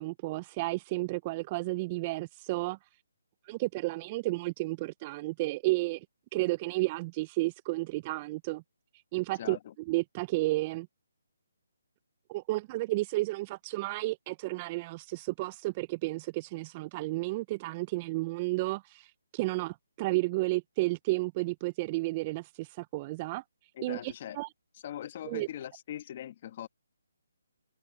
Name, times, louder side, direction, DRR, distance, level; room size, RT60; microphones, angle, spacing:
voice 1, 0.0-2.9 3.4-6.1 6.3-8.6 9.1-9.6 9.9-10.9 12.3-23.4 23.8-24.5 25.2-25.5, right 21 dB, 25° right, 0.4 m, -32 dB
voice 2, 9.4-9.7 23.8-24.4 24.8-26.7, left 11 dB, 40° left, 1.3 m, -41 dB
hypercardioid pair, 155°, 0 cm